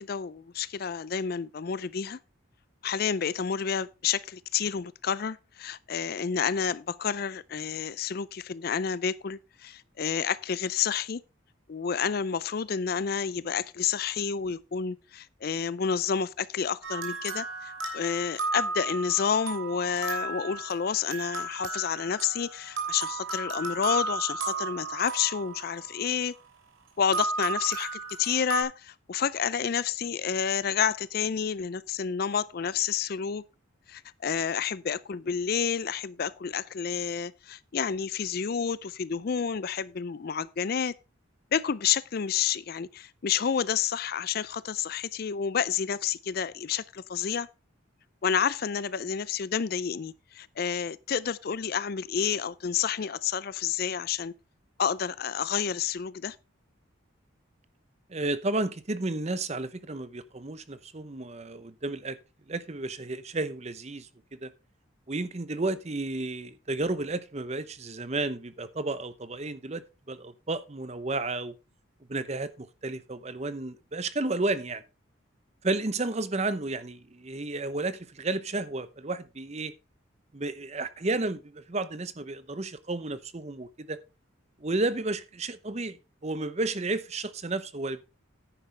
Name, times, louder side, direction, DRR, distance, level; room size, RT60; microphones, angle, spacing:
voice 1, 0.0-2.2 2.8-11.2 11.7-26.3 27.0-33.4 33.9-40.9 41.5-47.5 48.2-54.3 54.8-56.4, left 7 dB, 45° left, 0.4 m, -29 dB
sound 1, 16.8-26.5 27.1-28.6, right 3 dB, 75° right, 3.1 m, -34 dB
voice 2, 58.1-62.2 62.5-64.1 64.4-64.5 65.1-71.5 72.1-74.8 75.6-79.7 80.3-84.0 84.6-86.0 86.2-88.0, right 2 dB, 30° right, 0.7 m, -32 dB
10.0 x 9.9 x 3.3 m
head